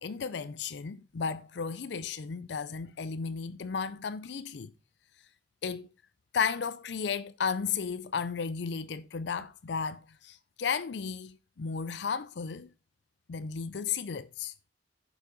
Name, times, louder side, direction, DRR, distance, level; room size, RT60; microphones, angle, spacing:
voice 1, 0.0-4.7 5.6-5.9 6.3-12.7 13.3-14.5, left 6 dB, 65° left, 0.5 m, -34 dB
9.5 x 7.1 x 3.9 m
head